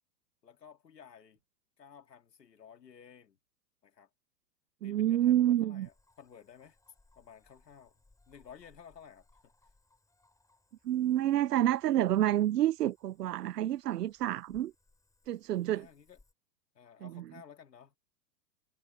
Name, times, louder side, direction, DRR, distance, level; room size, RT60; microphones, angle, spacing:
voice 1, 0.4-1.4 1.8-3.4 3.8-4.1 4.8-6.8 7.2-9.3 15.7-16.2 16.7-18.0, left 7 dB, 85° left, 2.6 m, -55 dB
voice 2, 4.8-5.9 10.8-14.7 15.3-15.9 17.0-17.2, right 12 dB, 75° right, 0.9 m, -28 dB
Cricket / Frog, 5.8-16.3, left 2 dB, 5° left, 6.4 m, -68 dB
hypercardioid pair, 110°, 48 cm